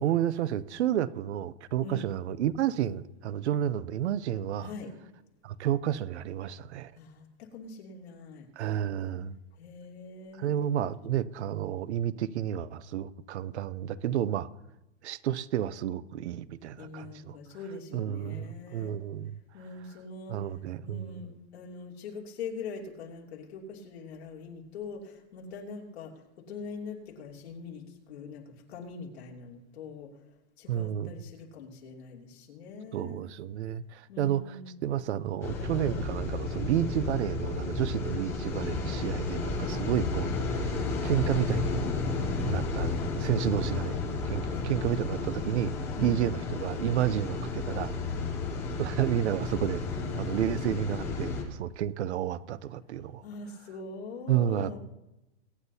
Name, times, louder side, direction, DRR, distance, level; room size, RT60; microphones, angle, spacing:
voice 1, 0.0-4.7 5.4-6.9 8.6-9.4 10.4-14.5 15.0-17.4 17.9-19.3 20.3-21.2 30.7-31.2 32.9-41.8 42.4-44.0 44.2-45.7 46.0-47.9 48.8-49.8 50.1-53.2 54.3-54.8, right 11 dB, 75° right, 0.7 m, -31 dB
voice 2, 4.6-4.9 7.0-8.5 9.6-10.6 16.8-19.0 19.5-20.4 20.8-28.4 28.7-30.1 30.6-33.3 34.1-34.7 44.5-44.7 46.0-46.1 53.2-54.8, left 4 dB, 65° left, 2.9 m, -43 dB
sound 1, 35.4-51.4, left 3 dB, 5° left, 0.4 m, -32 dB
23.0 x 10.0 x 2.8 m
supercardioid pair, 175°, 34 cm